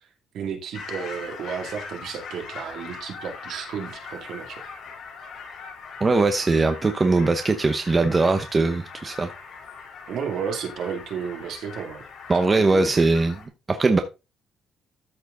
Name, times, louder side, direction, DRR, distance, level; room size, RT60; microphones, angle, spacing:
voice 1, 0.3-4.6 10.1-12.0 12.5-13.1, right 7 dB, 60° right, 2.4 m, -32 dB
sound 1, 0.7-13.5, left 5 dB, 55° left, 3.3 m, -41 dB
voice 2, 6.0-9.3 12.3-13.4 13.7-14.0, right 3 dB, 20° right, 0.8 m, -20 dB
13.0 x 4.7 x 3.8 m
cardioid pair, 165°, 0 cm